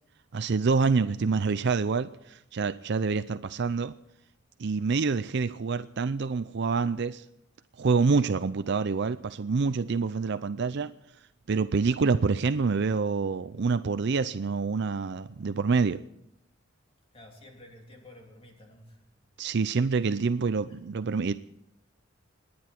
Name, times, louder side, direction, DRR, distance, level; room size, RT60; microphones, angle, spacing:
voice 1, 0.3-3.9 4.6-7.2 7.8-10.9 11.5-16.0 19.4-21.3, right 4 dB, 60° right, 12 dB, 0.5 m, -27 dB
voice 2, 17.1-19.0 20.7-20.9, left 1 dB, 30° left, 1 dB, 3.3 m, -52 dB
28.5 x 10.5 x 4.5 m, 0.81 s
head